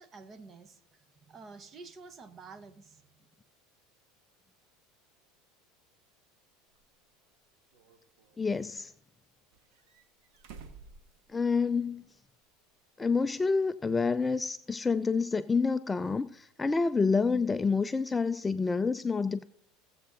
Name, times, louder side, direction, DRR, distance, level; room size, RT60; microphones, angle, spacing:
voice 1, 0.0-3.2, right 4 dB, 30° right, 1.1 m, -50 dB
sound 1, 6.7-6.8 7.7-8.6 9.5-11.9 12.2-12.3 13.8-13.9, right 5 dB, 70° right, 1.5 m, -53 dB
voice 2, 8.4-8.9 11.3-12.0 13.0-19.4, left 4 dB, 15° left, 0.3 m, -28 dB
17.0 x 7.7 x 3.8 m
supercardioid pair, 115°, 0 cm